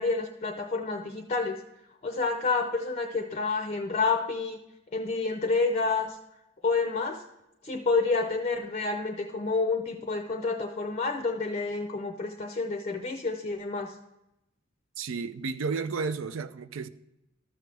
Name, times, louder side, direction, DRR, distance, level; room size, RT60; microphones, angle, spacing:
voice 1, 0.0-1.6 2.0-4.6 4.9-6.2 6.6-7.2 7.6-13.9, left 4 dB, 35° left, 0.5 m, -29 dB
voice 2, 15.0-16.9, right 4 dB, 75° right, 0.4 m, -32 dB
13.0 x 6.4 x 3.3 m
head